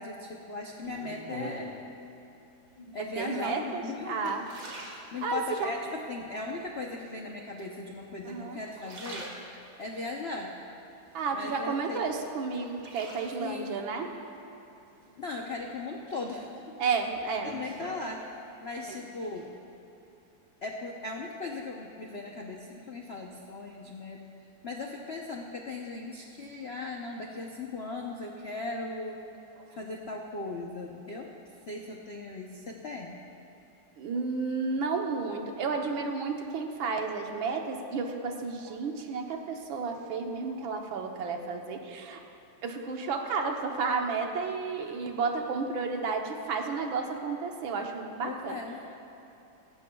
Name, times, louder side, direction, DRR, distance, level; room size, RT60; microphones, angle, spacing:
voice 1, 0.0-1.7 2.9-4.4 4.9-9.3 9.8-10.6 11.3-12.0 13.4-13.8 15.2-16.8 17.4-18.3 18.6-19.5 20.6-24.3 24.6-29.2 29.7-31.3 31.7-33.2 48.2-48.8, left 3 dB, 75° left, 0 dB, 0.5 m, -38 dB
sound 1, 0.8-1.9 2.7-3.2 3.7-5.7 6.2-6.8 7.6-8.3 8.6-9.9 10.4-11.6 12.0-13.7 15.0-15.6 16.1-18.7 18.9-19.4, right 1 dB, 45° right, 1.9 m, -46 dB
voice 2, 3.2-4.4 5.2-5.7 8.2-8.6 11.1-14.1 16.8-17.6 34.0-42.2 42.6-48.6, right 4 dB, 70° right, 3 dB, 1.7 m, -32 dB
18.0 x 15.5 x 2.3 m, 3.0 s
omnidirectional pair, 2.3 m